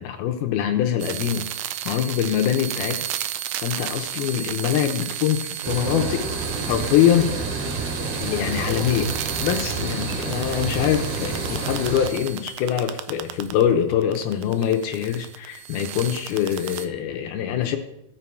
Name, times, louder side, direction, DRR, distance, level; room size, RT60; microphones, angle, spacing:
voice 1, 0.0-1.5 1.9-3.0 3.6-6.3 6.7-7.3 8.1-9.1 9.4-17.8, left 10 dB, 75° left, 5 dB, 2.5 m, -23 dB
sound 1, 1.0-13.6 13.9-16.9, right 11 dB, 85° right, 2.1 m, -33 dB
sound 2, 5.6-12.1, right 3 dB, 70° right, 3.8 m, -29 dB
16.5 x 5.6 x 4.5 m, 0.84 s
omnidirectional pair, 4.7 m